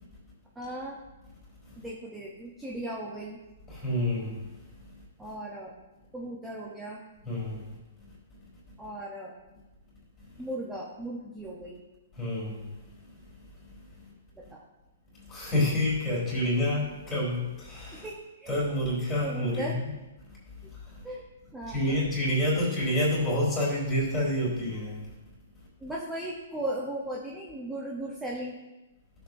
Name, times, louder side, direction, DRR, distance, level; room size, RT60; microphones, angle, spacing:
voice 1, 0.5-1.0 1.8-3.4 5.2-5.7 6.1-7.0 8.8-9.3 10.4-11.8 14.3-14.6 17.9-18.6 19.2-19.8 21.0-21.2 21.5-22.0 25.8-28.6, right 1 dB, 5° right, -4 dB, 0.9 m, -37 dB
voice 2, 3.7-4.5 7.2-7.8 12.1-13.0 13.7-14.1 15.3-18.1 18.5-19.9 20.9-21.0 21.7-25.1, left 1 dB, 10° left, -6 dB, 3.6 m, -28 dB
14.5 x 6.9 x 2.7 m, 1.1 s
hypercardioid pair, 170°, 0 cm